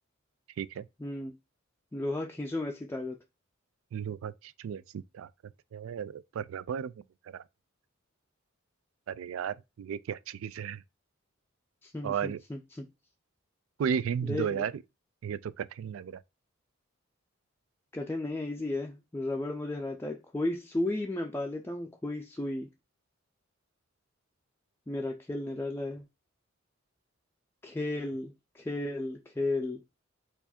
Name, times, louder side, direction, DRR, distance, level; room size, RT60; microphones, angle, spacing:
voice 1, 1.0-1.3 1.9-3.2 11.8-12.8 14.2-14.7 17.9-22.7 24.9-26.0 27.6-29.8, left 2 dB, 10° left, 0.4 m, -34 dB
voice 2, 3.9-5.3 5.7-6.9 7.3-7.4 9.1-10.8 12.0-12.4 13.8-14.8 15.2-16.2, right 7 dB, 80° right, 0.3 m, -34 dB
4.6 x 2.5 x 4.1 m
head